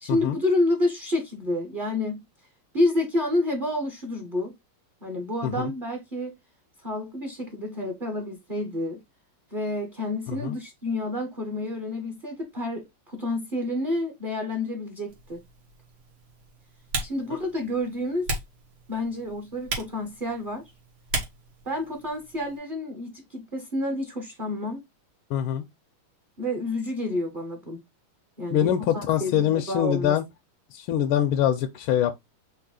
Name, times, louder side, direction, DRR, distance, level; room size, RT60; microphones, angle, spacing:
voice 1, 0.0-2.2 2.7-4.5 5.0-6.3 6.8-9.0 9.5-15.4 17.0-18.3 18.9-20.6 21.6-24.8 26.4-27.8 28.4-30.1, left 1 dB, 35° right, 0.9 m, -29 dB
Typing, 15.1-22.6, right 3 dB, 80° right, 2.3 m, -37 dB
voice 2, 25.3-25.6 28.5-30.2 30.7-32.1, left 10 dB, 85° left, 1.5 m, -24 dB
4.7 x 2.8 x 3.8 m
omnidirectional pair, 2.3 m